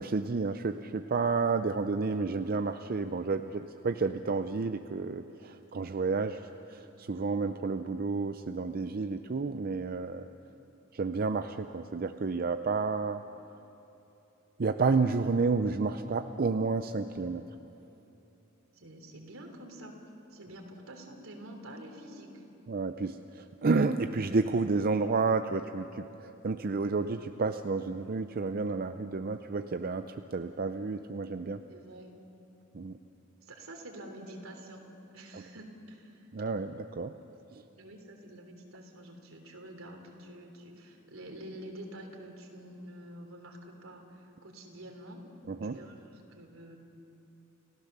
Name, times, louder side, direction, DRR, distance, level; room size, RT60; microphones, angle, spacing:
voice 1, 0.0-6.4 6.7-10.3 10.9-13.2 14.6-17.4 22.7-31.6 32.7-33.0 36.3-37.1 37.5-37.6 45.5-45.8, right 4 dB, 45° right, 8 dB, 0.5 m, -30 dB
voice 2, 18.7-19.9 20.3-22.4 31.7-32.2 33.4-34.8 35.1-36.3 37.8-45.3 45.6-46.8, right 1 dB, 80° right, 3 dB, 3.3 m, -47 dB
30.0 x 15.5 x 6.7 m, 3.0 s
head